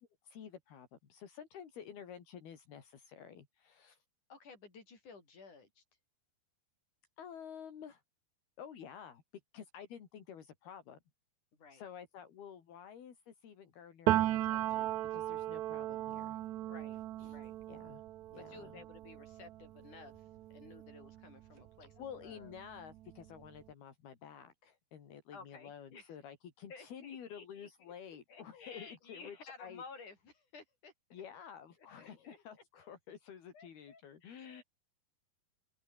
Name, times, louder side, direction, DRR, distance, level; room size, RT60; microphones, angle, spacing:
voice 1, 0.2-4.0 7.2-8.0 8.6-9.2 9.5-11.0 11.7-16.4 17.2-17.4 17.7-18.0 18.3-18.8 22.0-29.8 31.1-34.6, left 8 dB, 75° left, 5.1 m, -51 dB
voice 2, 4.3-5.8 11.5-11.9 16.6-17.0 17.3-17.6 18.3-22.5 25.3-26.2 26.7-27.9 28.3-30.9 32.0-32.9 33.5-34.6, left 4 dB, 50° left, 7.9 m, -55 dB
Piano, 14.1-21.7 22.0-23.6, right 14 dB, 70° right, 1.7 m, -37 dB
open air
omnidirectional pair, 4.5 m